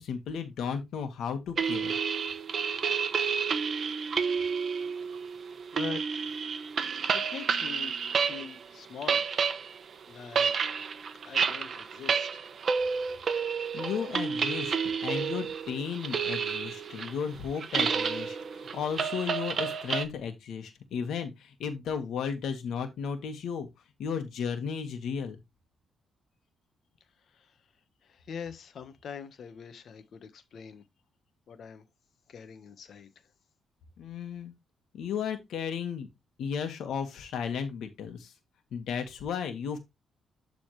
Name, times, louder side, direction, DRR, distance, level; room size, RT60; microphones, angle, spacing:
voice 1, 0.0-1.9 13.7-14.8 15.0-23.7 24.0-25.4 34.0-34.5 34.9-36.1 36.4-38.3 38.7-39.8, left 7 dB, 75° left, 1.9 m, -34 dB
sound 1, 1.6-8.6 8.9-20.0, right 6 dB, 45° right, 1.0 m, -30 dB
voice 2, 5.7-6.3 7.1-9.2 10.1-10.5 11.2-12.4 27.3-27.5 28.1-30.8 31.5-31.8 32.3-33.1, left 7 dB, 55° left, 1.4 m, -43 dB
12.0 x 4.1 x 3.3 m
cardioid pair, 130°, 0 cm